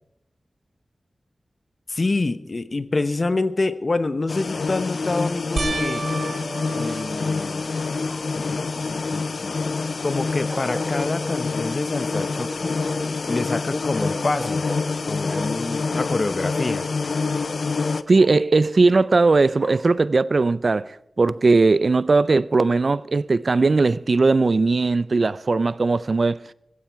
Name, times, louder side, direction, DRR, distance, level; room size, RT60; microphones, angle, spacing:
voice 1, 1.9-6.1 6.7-7.7 8.3-9.6 10.0-14.7 15.1-16.9, left 3 dB, 50° left, 0.9 m, -27 dB
sound 1, 4.3-18.0, left 4 dB, 75° left, 0.6 m, -27 dB
Bark, 4.9-5.6 8.0-9.1 10.5-11.4 12.1-13.2 13.9-15.6 15.9-18.3 19.0-19.9, equal, 5° left, 2.5 m, -38 dB
sound 2, 5.6-8.2 8.8-9.3 9.7-9.8 13.0-13.1, right 4 dB, 80° right, 1.5 m, -33 dB
voice 2, 18.1-26.4, right 3 dB, 60° right, 0.4 m, -19 dB
15.5 x 15.0 x 4.6 m
wide cardioid pair, 65°, 0 cm